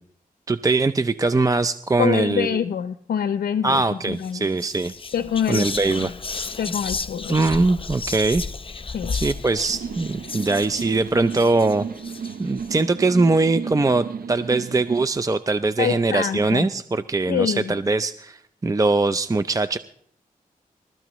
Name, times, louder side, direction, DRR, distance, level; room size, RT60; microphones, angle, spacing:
voice 1, 0.5-2.6 3.6-4.9 5.5-6.1 7.3-8.4 9.1-11.9 12.4-19.8, right 3 dB, 20° right, 12 dB, 0.5 m, -21 dB
voice 2, 2.0-3.8 4.1-4.5 5.1-5.7 6.0-6.1 6.6-7.5 8.9-9.2 15.8-16.7 17.3-17.7, left 8 dB, 90° left, 12 dB, 0.5 m, -25 dB
Whispering, 4.1-4.3 4.6-12.7, left 4 dB, 35° left, 0.7 m, -33 dB
sound 1, 9.7-15.1, right 6 dB, 80° right, 0.7 m, -34 dB
28.0 x 13.5 x 3.1 m, 0.67 s
cardioid pair, 60°, 15 cm